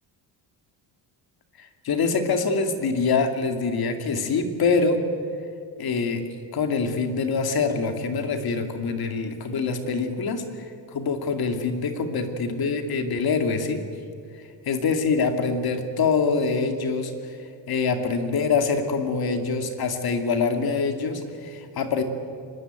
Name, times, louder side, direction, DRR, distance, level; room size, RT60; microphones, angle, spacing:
voice 1, 1.6-5.0 5.8-6.2 6.5-10.4 10.9-13.8 14.7-17.3 17.7-22.0, left 4 dB, 50° left, 6 dB, 2.5 m, -25 dB
24.5 x 20.5 x 9.0 m, 2.4 s
cardioid pair, 170°, 46 cm